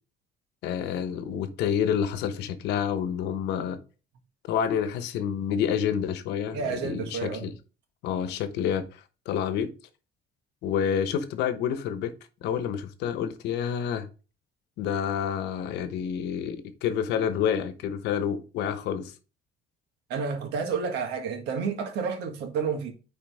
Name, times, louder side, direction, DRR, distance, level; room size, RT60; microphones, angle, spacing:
voice 1, 0.6-3.8 4.5-7.5 8.0-8.8 9.3-9.7 10.6-12.1 12.4-14.1 14.8-19.1, left 8 dB, 85° left, 1.0 m, -28 dB
voice 2, 6.5-7.5 20.1-22.9, right 5 dB, 85° right, 1.8 m, -30 dB
9.3 x 4.2 x 3.5 m
cardioid pair, 110°, 17 cm